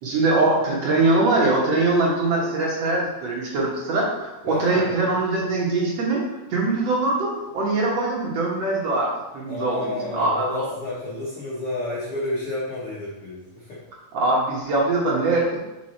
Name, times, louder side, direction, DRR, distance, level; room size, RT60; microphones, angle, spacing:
voice 1, 0.0-6.2 6.5-10.7 14.1-15.6, right 2 dB, 60° right, -4 dB, 2.0 m, -22 dB
voice 2, 4.4-4.9 9.5-13.8, left 2 dB, 60° left, -8 dB, 1.5 m, -30 dB
6.3 x 5.3 x 4.3 m, 1.0 s
omnidirectional pair, 4.3 m